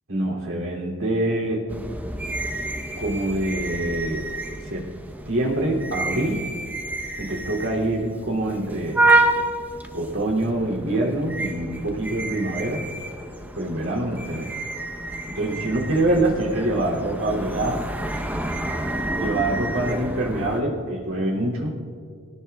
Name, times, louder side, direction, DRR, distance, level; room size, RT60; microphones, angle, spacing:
voice 1, 0.1-1.6 3.0-4.2 4.7-4.8 5.3-6.4 7.2-9.0 9.9-12.9 13.5-14.5 15.3-17.8 19.1-21.7, right 1 dB, 90° right, -3 dB, 2.8 m, -25 dB
sound 1, 1.7-20.6, right 2 dB, 10° right, 0.8 m, -28 dB
22.5 x 18.0 x 2.3 m, 2.3 s
head